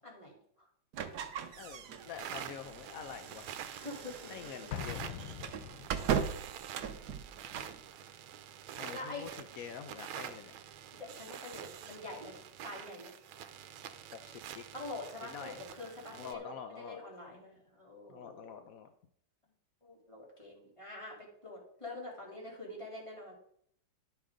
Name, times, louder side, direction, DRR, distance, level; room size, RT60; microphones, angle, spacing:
voice 1, 0.0-0.7 3.7-4.3 8.8-9.3 10.9-12.4 12.6-13.1 14.7-18.7 19.8-23.4, left 2 dB, 15° left, -3 dB, 3.4 m, -46 dB
sound 1, 0.9-7.8, right 8 dB, 60° right, 1.2 m, -39 dB
voice 2, 1.6-3.6 4.3-5.0 8.8-9.3 9.6-10.5 14.1-14.6 15.2-15.6 16.1-17.0 18.1-18.9, left 7 dB, 70° left, 8 dB, 0.8 m, -46 dB
sound 2, 2.0-16.3, right 10 dB, 80° right, 1.5 m, -47 dB
Explosion, 4.7-6.4, left 10 dB, 85° left, 1.5 m, -43 dB
11.5 x 8.7 x 3.8 m, 0.66 s
omnidirectional pair, 2.3 m